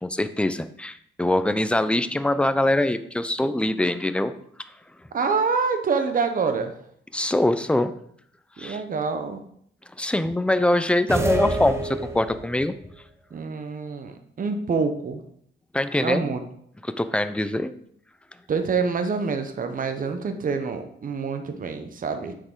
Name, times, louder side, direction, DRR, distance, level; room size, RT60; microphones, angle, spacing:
voice 1, 0.0-4.3 7.1-7.9 8.6-8.8 10.0-12.7 15.7-16.3 16.8-17.7, left 1 dB, 5° left, 11 dB, 0.5 m, -23 dB
voice 2, 5.1-6.7 8.6-9.4 13.3-15.2 16.0-16.4 18.5-22.3, right 5 dB, 45° right, 7 dB, 1.0 m, -26 dB
sound 1, 11.1-12.6, right 1 dB, 15° right, 1.0 m, -26 dB
7.7 x 6.5 x 3.8 m, 0.66 s
cardioid pair, 95°, 20 cm